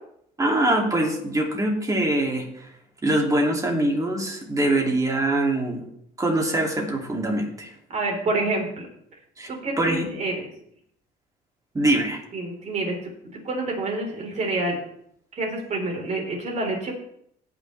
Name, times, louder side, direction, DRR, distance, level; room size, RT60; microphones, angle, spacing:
voice 1, 0.4-2.7 3.0-5.9 6.2-7.7 9.4-9.5 9.8-10.1 11.7-12.2, right 1 dB, 20° right, 1 dB, 2.5 m, -23 dB
voice 2, 7.9-8.9 9.5-10.5 12.3-14.8 15.3-16.9, right 2 dB, 45° right, 0 dB, 3.9 m, -28 dB
18.5 x 6.2 x 3.3 m, 0.70 s
cardioid pair, 110°, 17 cm